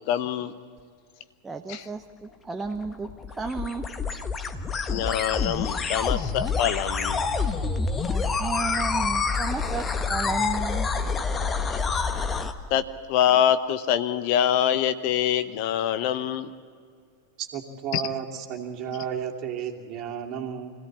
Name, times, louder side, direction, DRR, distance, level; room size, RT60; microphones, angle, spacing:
voice 1, 0.1-0.5 1.7-1.9 4.7-7.2 11.9-12.0 12.7-16.5 17.9-18.0, left 10 dB, 45° left, 12 dB, 0.9 m, -25 dB
voice 2, 1.4-3.1 3.4-3.8 8.1-10.9, right 4 dB, 10° right, 4 dB, 1.0 m, -33 dB
sound 1, 2.7-12.5, left 4 dB, 20° left, 1.3 m, -27 dB
voice 3, 17.4-20.7, right 8 dB, 40° right, 2 dB, 2.7 m, -33 dB
25.5 x 17.0 x 8.5 m, 2.2 s
figure-of-eight pair, 90°, 0 cm